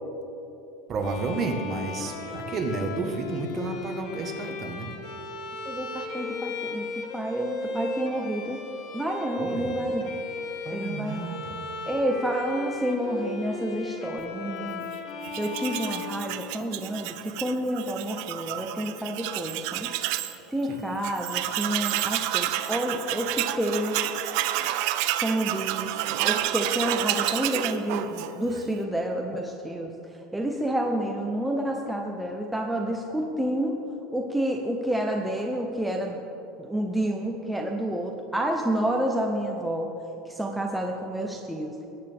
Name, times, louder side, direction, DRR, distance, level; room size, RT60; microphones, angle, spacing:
voice 1, 0.9-4.9 9.4-9.7 10.6-11.6 20.6-20.8, right 3 dB, 35° right, 3 dB, 1.4 m, -31 dB
Bowed string instrument, 1.0-16.9, left 2 dB, 55° left, 1.4 m, -36 dB
voice 2, 5.7-8.6 8.9-10.1 10.7-11.3 11.9-14.9 15.4-19.9 20.5-24.1 25.2-25.9 26.2-29.9 30.3-33.8 34.1-36.2 36.6-39.9 40.3-41.9, right 1 dB, 5° right, 1 dB, 0.8 m, -29 dB
Tools, 15.2-20.4 20.7-20.8 21.0-28.6, right 14 dB, 65° right, 0.6 m, -30 dB
19.0 x 8.9 x 3.6 m, 2.9 s
supercardioid pair, 130°, 0 cm